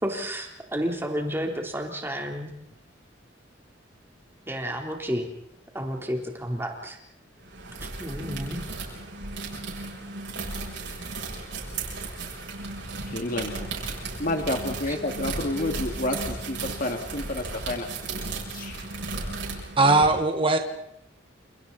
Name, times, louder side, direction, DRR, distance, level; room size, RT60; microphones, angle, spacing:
voice 1, 0.0-2.5 4.5-5.3 5.7-7.0 8.0-8.6 14.9-15.0, equal, 15° right, 1 dB, 3.7 m, -31 dB
sound 1, 7.4-20.0, right 3 dB, 85° right, 7.9 m, -35 dB
voice 2, 13.1-13.7 14.2-17.9 18.5-18.9, left 1 dB, 50° left, 3 dB, 2.4 m, -30 dB
voice 3, 19.8-20.6, right 3 dB, 30° right, 5 dB, 1.7 m, -19 dB
30.0 x 29.0 x 4.2 m, 0.76 s
head